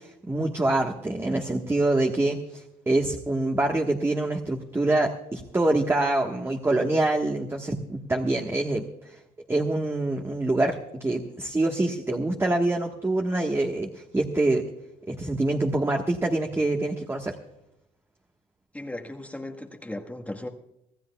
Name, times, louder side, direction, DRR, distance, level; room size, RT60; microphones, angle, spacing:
voice 1, 0.0-9.2 9.5-14.6 15.1-17.4, right 2 dB, 15° right, 1 dB, 1.4 m, -25 dB
voice 2, 18.7-20.5, left 1 dB, 10° left, 2 dB, 1.4 m, -36 dB
25.5 x 15.0 x 2.3 m, 0.85 s
cardioid pair, 110°, 17 cm